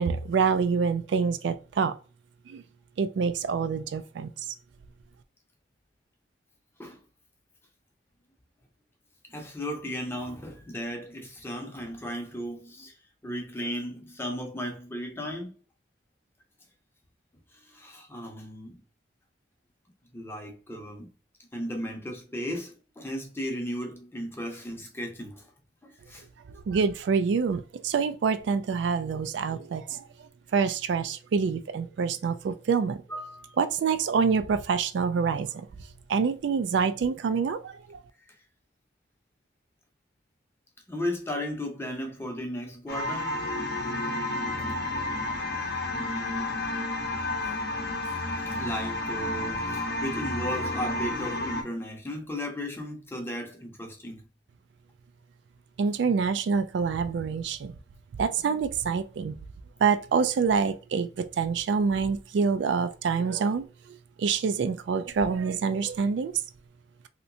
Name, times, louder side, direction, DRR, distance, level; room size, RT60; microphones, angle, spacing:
voice 1, 0.0-2.0 2.5-2.6 3.0-4.3 26.7-33.0 33.6-35.7 36.1-38.0 55.8-57.7 58.2-59.4 59.8-66.3, right 5 dB, 70° right, 0.3 m, -26 dB
voice 2, 9.3-13.0 13.2-15.6 17.5-18.8 20.1-21.1 21.5-25.5 25.8-26.2 33.1-33.6 38.3-38.4 40.9-43.4 45.6-46.6 47.4-47.6 48.0-54.3, equal, 10° left, 0.6 m, -35 dB
sound 1, 42.9-51.6, left 2 dB, 55° left, 0.7 m, -31 dB
3.1 x 2.9 x 2.6 m
head